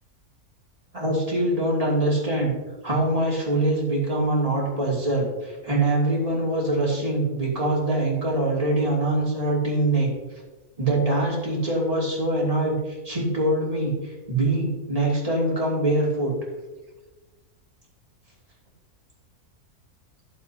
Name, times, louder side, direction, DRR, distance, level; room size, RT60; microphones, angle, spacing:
voice 1, 0.9-2.5 2.8-10.1 10.8-16.3, right 1 dB, 25° right, -4 dB, 2.6 m, -24 dB
12.0 x 7.3 x 2.8 m, 1.2 s
omnidirectional pair, 1.6 m